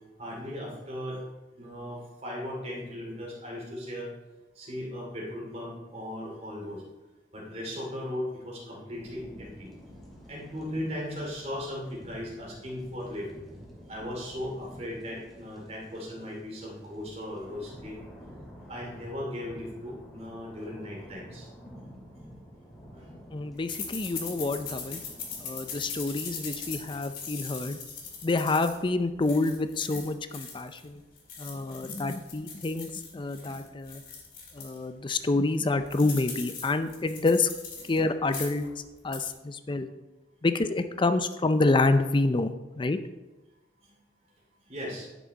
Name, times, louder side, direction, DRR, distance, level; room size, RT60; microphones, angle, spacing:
voice 1, 0.2-1.2 1.6-4.1 4.6-6.8 7.3-9.7 10.3-13.3 13.9-18.0 18.7-21.5 22.9-23.0 43.8-43.9 44.6-45.1, left 1 dB, 40° right, -2 dB, 2.7 m, -37 dB
sound 1, 8.9-27.1, equal, ahead, 2.4 m, -50 dB
voice 2, 23.3-25.0 25.4-27.8 28.2-31.0 31.4-34.0 34.5-37.5 37.9-39.9 40.4-43.0, left 3 dB, 30° left, 10 dB, 0.5 m, -28 dB
sound 2, 23.7-30.8 31.2-34.8 35.2-35.3 35.5-38.0 38.2-38.7 39.0-39.3, left 5 dB, 55° left, 2.2 m, -40 dB
10.5 x 6.2 x 4.0 m, 1.1 s
head